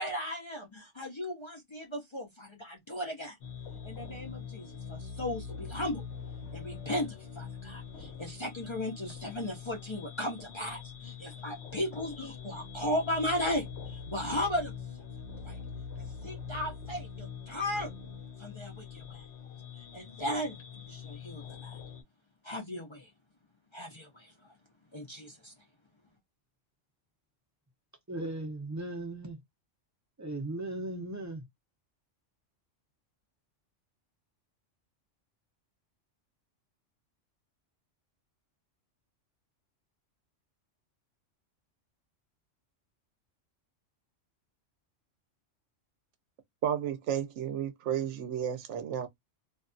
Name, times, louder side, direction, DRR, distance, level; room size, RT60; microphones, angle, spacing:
voice 1, 0.0-3.4 3.8-6.0 6.5-14.8 15.4-15.6 16.0-17.9 18.4-19.3 19.8-21.8 22.4-23.1 23.7-24.5 24.9-25.5, left 1 dB, 40° left, 0.4 m, -36 dB
sound 1, 3.4-22.0, left 6 dB, 65° left, 0.9 m, -44 dB
voice 2, 28.1-29.4 30.2-31.4, right 2 dB, 20° right, 0.4 m, -37 dB
voice 3, 46.6-49.1, right 9 dB, 70° right, 1.0 m, -32 dB
2.5 x 2.2 x 2.5 m
omnidirectional pair, 1.3 m